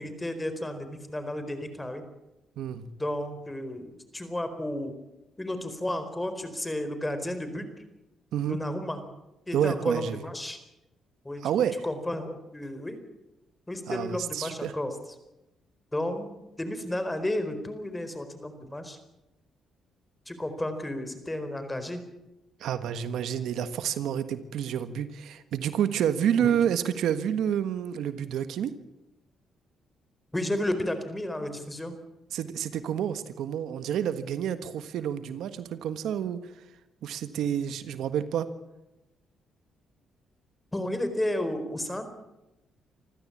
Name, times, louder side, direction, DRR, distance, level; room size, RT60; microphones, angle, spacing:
voice 1, 0.0-2.0 3.0-4.9 5.4-7.7 8.5-9.0 9.5-10.6 11.2-11.4 11.8-13.0 13.7-14.9 15.9-16.3 16.6-19.0 20.3-22.0 26.4-26.6 30.3-31.9 40.7-42.1, left 1 dB, 10° left, 9 dB, 4.4 m, -32 dB
voice 2, 2.6-2.9 8.3-8.6 9.5-10.2 11.4-11.8 13.9-14.7 22.6-28.7 32.3-36.5 37.0-38.5, right 9 dB, 80° right, 11 dB, 1.4 m, -29 dB
27.0 x 14.5 x 8.6 m, 0.95 s
cardioid pair, 90°, 0 cm